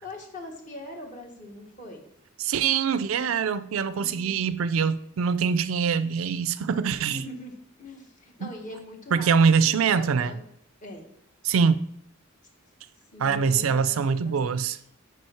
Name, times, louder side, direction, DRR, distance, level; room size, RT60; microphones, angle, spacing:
voice 1, 0.0-2.0 4.0-4.4 7.1-10.4 10.8-11.0 13.1-14.4, left 1 dB, 40° left, 1.5 m, -42 dB
voice 2, 2.4-7.2 8.4-8.5 9.1-10.3 11.4-11.8 13.2-14.8, right 6 dB, 75° right, 0.4 m, -23 dB
6.2 x 5.2 x 4.4 m
head